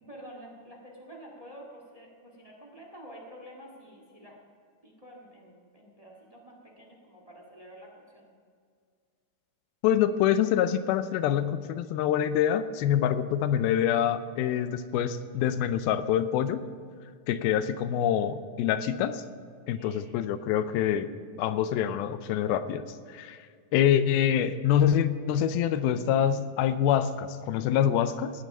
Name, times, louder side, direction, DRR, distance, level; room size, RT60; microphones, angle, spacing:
voice 1, 0.1-4.4 4.8-8.3 19.8-20.1, equal, 40° right, 0 dB, 0.5 m, -48 dB
voice 2, 9.8-16.6 17.3-19.2 19.7-21.1 21.4-23.4 23.7-28.3, left 9 dB, 85° left, 12 dB, 2.5 m, -26 dB
17.0 x 9.8 x 5.4 m, 2.1 s
omnidirectional pair, 4.3 m